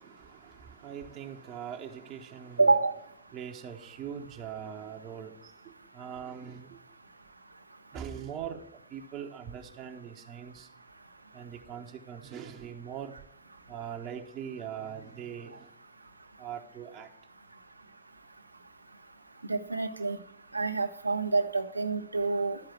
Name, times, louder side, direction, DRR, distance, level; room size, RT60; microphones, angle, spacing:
voice 1, 0.0-2.7 3.3-5.5 5.9-6.8 7.9-8.7 8.9-10.7 11.3-13.2 13.7-15.7 16.4-17.1, right 8 dB, 35° right, 0.8 m, -41 dB
voice 2, 2.6-2.9 19.5-20.2 20.5-22.6, right 3 dB, 85° right, 0.7 m, -27 dB
12.0 x 4.8 x 7.4 m
figure-of-eight pair, 90°, 0 cm